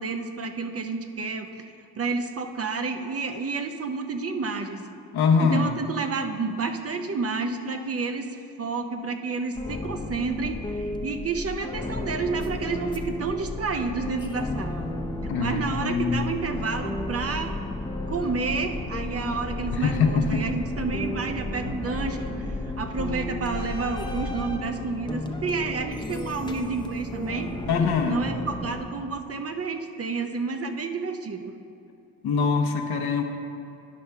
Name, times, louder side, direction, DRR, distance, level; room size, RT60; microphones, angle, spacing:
voice 1, 0.0-4.9 5.4-14.9 15.4-17.6 18.1-27.5 28.1-31.6, right 4 dB, 35° right, 6 dB, 0.6 m, -30 dB
voice 2, 5.1-5.8 15.3-16.3 19.7-20.4 27.7-28.2 32.2-33.2, left 5 dB, 65° left, 4 dB, 0.9 m, -23 dB
sound 1, 9.5-28.8, left 2 dB, 10° left, 0.6 m, -33 dB
10.5 x 5.3 x 3.5 m, 2.6 s
supercardioid pair, 55°, 40 cm